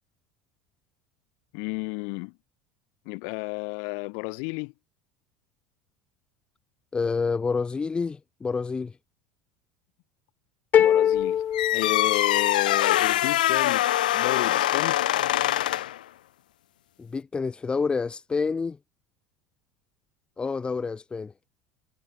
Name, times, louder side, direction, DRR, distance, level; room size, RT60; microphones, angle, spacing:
voice 1, 1.5-2.3 3.1-4.7 10.7-11.4 11.7-15.0, left 40 dB or more, 70° left, 2.7 m, -32 dB
voice 2, 6.9-8.9 17.0-18.8 20.4-21.3, left 4 dB, 20° left, 2.7 m, -28 dB
sound 1, 10.7-12.7, left 10 dB, 35° left, 0.4 m, -23 dB
sound 2, 11.5-16.0, left 13 dB, 90° left, 0.9 m, -23 dB
supercardioid pair, 95°, 4 cm